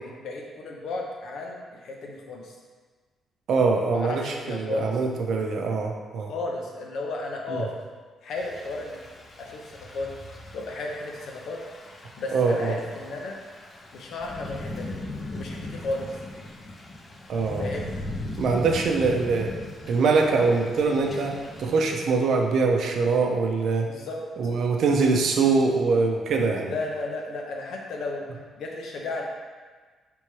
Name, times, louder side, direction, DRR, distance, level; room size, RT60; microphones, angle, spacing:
voice 1, 0.0-2.5 3.9-4.9 6.3-7.7 8.2-9.0 9.4-10.1 10.5-11.6 12.2-13.4 13.9-15.0 15.3-16.2 17.6-17.9 23.9-24.2 26.7-28.3 28.6-29.2, left 2 dB, 70° left, 0 dB, 0.7 m, -33 dB
voice 2, 3.5-6.3 7.5-7.6 12.3-12.7 17.3-17.6 18.4-19.5 19.9-23.9 24.4-26.7, right 4 dB, 70° right, 2 dB, 0.5 m, -23 dB
Thunder / Rain, 8.4-22.0, left 1 dB, 35° left, 0.5 m, -39 dB
4.4 x 3.5 x 3.1 m, 1.4 s
cardioid pair, 90°, 0 cm